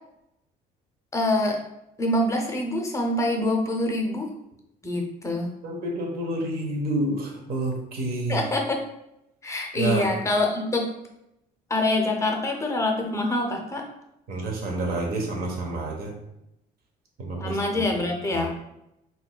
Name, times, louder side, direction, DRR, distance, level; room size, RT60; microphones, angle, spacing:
voice 1, 1.1-1.6 2.0-4.3 4.8-5.5 8.3-8.8 9.4-10.9 11.7-13.8 17.4-18.5, left 1 dB, 15° left, 1 dB, 0.6 m, -25 dB
voice 2, 5.6-8.5 9.7-10.1 14.3-16.1 17.2-17.8 18.3-18.5, right 2 dB, 65° right, 0 dB, 0.9 m, -29 dB
4.0 x 2.6 x 2.2 m, 0.84 s
cardioid pair, 110°, 17 cm